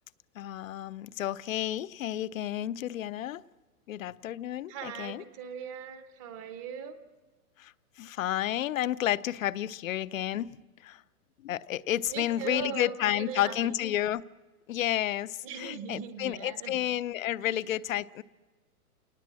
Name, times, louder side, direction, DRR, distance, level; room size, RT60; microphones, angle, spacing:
voice 1, 0.4-3.4 3.9-5.2 7.6-7.7 8.0-10.6 10.8-11.0 11.4-14.2 14.7-18.2, left 13 dB, 60° left, 17 dB, 0.7 m, -31 dB
voice 2, 4.7-7.0 12.1-13.8 15.4-16.8, right 7 dB, 20° right, 10 dB, 0.9 m, -39 dB
28.5 x 19.5 x 7.5 m, 1.3 s
hypercardioid pair, 165°, 46 cm